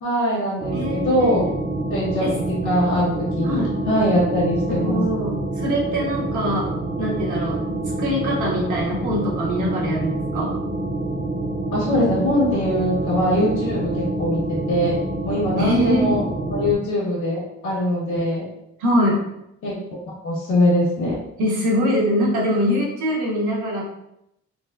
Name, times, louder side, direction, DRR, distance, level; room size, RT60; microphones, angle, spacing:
voice 1, 0.0-1.5 1.9-5.0 7.7-7.8 11.7-16.2 16.5-18.5 19.6-19.7 20.2-21.2, left 1 dB, 80° left, -8 dB, 1.4 m, -22 dB
sound 1, 0.6-16.7, right 2 dB, 35° right, 0.5 m, -27 dB
voice 2, 0.7-1.3 2.2-2.3 3.4-3.8 4.7-6.7 7.0-7.6 8.0-10.5 15.6-16.2 18.8-19.2 21.4-23.9, equal, 75° right, -4 dB, 1.2 m, -23 dB
4.1 x 2.2 x 2.3 m, 0.81 s
cardioid pair, 90°, 30 cm